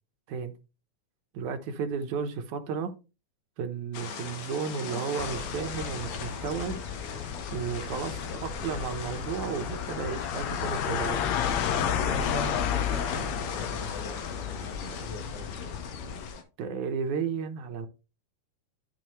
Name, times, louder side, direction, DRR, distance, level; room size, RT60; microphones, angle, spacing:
voice 1, 1.3-2.9 3.6-6.8 7.5-11.2 16.6-17.9, right 6 dB, 75° right, 2.3 m, -33 dB
sound 1, 3.9-16.4, left 5 dB, 85° left, 3.0 m, -40 dB
sound 2, 5.2-16.3, left 8 dB, 70° left, 1.9 m, -32 dB
voice 2, 12.0-15.8, left 1 dB, 50° left, 2.7 m, -40 dB
12.5 x 4.8 x 3.1 m
omnidirectional pair, 3.6 m